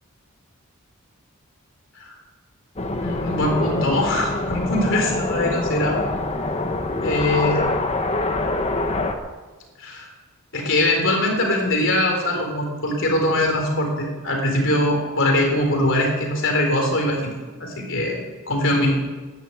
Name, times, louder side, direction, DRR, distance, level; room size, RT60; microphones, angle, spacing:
sound 1, 2.8-9.1, left 2 dB, 30° left, 1.3 m, -25 dB
voice 1, 3.0-6.0 7.0-7.6 9.8-10.1 10.5-17.3 17.6-18.2 18.5-19.0, left 1 dB, 65° left, 2 dB, 4.0 m, -22 dB
11.5 x 11.0 x 9.1 m, 1.3 s
head